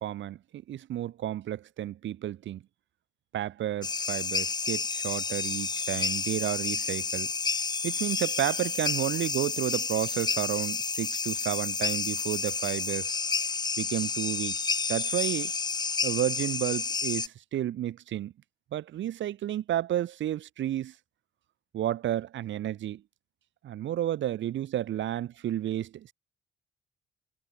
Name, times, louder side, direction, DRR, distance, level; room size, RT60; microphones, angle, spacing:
voice 1, 0.0-2.6 3.3-7.3 7.8-13.1 13.8-14.6 14.9-15.5 16.0-18.3 18.7-20.9 21.7-23.0 23.6-26.1, right 12 dB, 70° right, 1.3 m, -31 dB
sound 1, 3.8-17.3, left 4 dB, 20° left, 0.7 m, -30 dB
cardioid pair, 90°, 20 cm